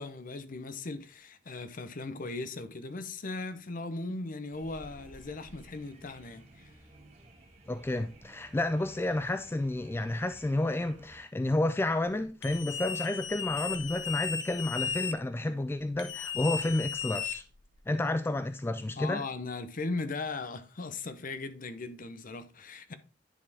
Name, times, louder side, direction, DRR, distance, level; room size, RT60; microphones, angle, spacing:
voice 1, 0.0-6.7 19.0-23.0, left 3 dB, 50° left, 0.7 m, -38 dB
sound 1, 4.5-11.2, right 1 dB, 40° right, 2.0 m, -54 dB
voice 2, 7.7-17.4 17.9-19.2, left 2 dB, 15° left, 0.3 m, -30 dB
sound 2, 12.4-15.1 16.0-17.8, left 7 dB, 85° left, 1.0 m, -35 dB
10.0 x 4.3 x 3.5 m
head